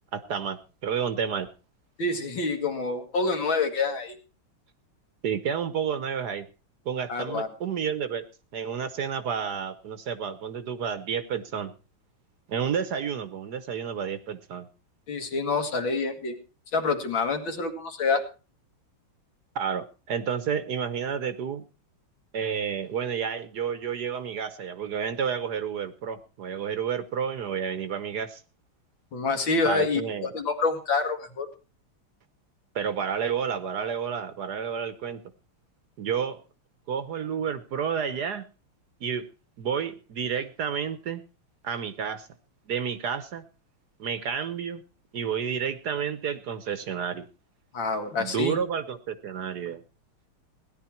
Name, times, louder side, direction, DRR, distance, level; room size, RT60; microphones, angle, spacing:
voice 1, 0.1-1.5 5.2-6.5 6.8-8.3 8.5-11.7 12.5-14.7 19.5-21.6 22.3-28.4 29.6-30.3 32.7-35.2 36.0-36.4 36.9-38.5 39.0-39.3 39.6-41.2 41.6-42.3 42.7-43.4 44.0-44.8 45.1-47.3 48.2-49.8, right 7 dB, 60° right, 12 dB, 1.3 m, -30 dB
voice 2, 2.0-4.2 7.1-7.5 15.1-16.4 16.7-18.2 29.1-31.5 47.7-48.6, left 4 dB, 60° left, 6 dB, 2.5 m, -27 dB
17.0 x 11.0 x 4.5 m, 0.33 s
omnidirectional pair, 2.4 m